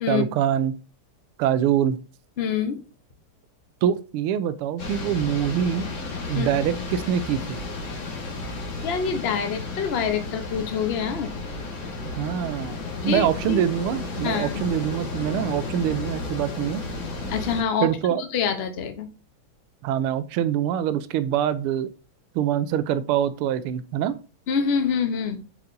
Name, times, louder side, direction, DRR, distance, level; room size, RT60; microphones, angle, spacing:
voice 1, 0.1-0.8 1.4-2.0 3.8-5.9 6.3-7.6 12.2-16.8 17.8-18.2 19.8-21.9 22.3-24.1, right 10 dB, 85° right, 13 dB, 1.5 m, -24 dB
voice 2, 2.4-2.8 6.3-6.6 8.8-11.3 13.0-13.6 14.2-14.6 17.3-19.1 24.5-25.4, left 6 dB, 85° left, 7 dB, 0.5 m, -26 dB
sound 1, 4.8-17.6, left 3 dB, 40° left, 1.7 m, -33 dB
7.6 x 4.8 x 2.6 m, 0.33 s
omnidirectional pair, 2.4 m